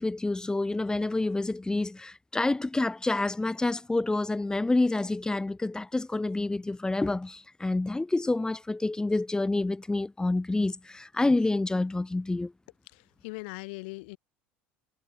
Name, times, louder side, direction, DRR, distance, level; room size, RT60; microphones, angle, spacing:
voice 1, 0.0-12.5, left 2 dB, 10° left, 7.1 m, -28 dB
voice 2, 12.9-14.2, left 27 dB, 70° left, 7.4 m, -40 dB
hypercardioid pair, 70°, 6 cm